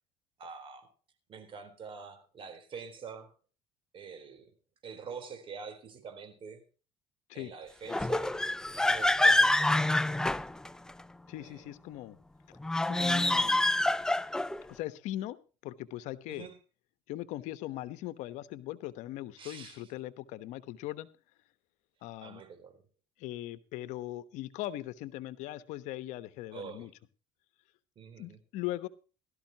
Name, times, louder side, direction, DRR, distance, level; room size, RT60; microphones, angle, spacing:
voice 1, 0.4-0.9 1.3-3.3 3.9-4.5 4.8-6.6 7.3-8.3 8.9-9.7 11.3-11.6 16.3-16.6 19.4-19.9 22.2-22.8 26.5-26.9 28.0-28.4, right 6 dB, 45° right, 8 dB, 3.9 m, -46 dB
sound 1, 7.9-11.0 12.6-14.6, left 1 dB, 5° left, 0.5 m, -26 dB
voice 2, 11.3-12.2 12.7-13.6 14.7-15.4 15.6-16.5 17.1-21.1 22.0-22.4 23.2-26.9 28.2-28.9, left 15 dB, 75° left, 14 dB, 1.1 m, -39 dB
17.0 x 13.0 x 2.9 m, 0.34 s
cardioid pair, 110°, 12 cm